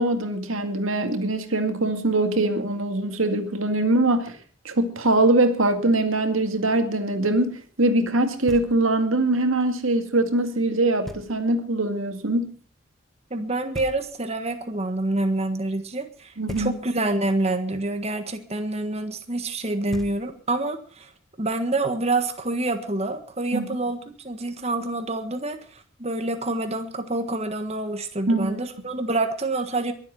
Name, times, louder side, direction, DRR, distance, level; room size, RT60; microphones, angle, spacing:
voice 1, 0.0-4.4 4.6-12.5 16.4-16.7 23.5-23.6 28.3-28.6, right 2 dB, 85° right, 7 dB, 2.2 m, -22 dB
Knock, 8.5-9.1 11.1-11.7 13.7-14.5 16.5-17.2 19.5-19.6 19.9-20.7, equal, ahead, 1.3 m, -41 dB
voice 2, 13.3-21.1 21.4-29.9, right 2 dB, 30° right, 8 dB, 1.5 m, -27 dB
22.5 x 8.1 x 6.0 m, 0.43 s
head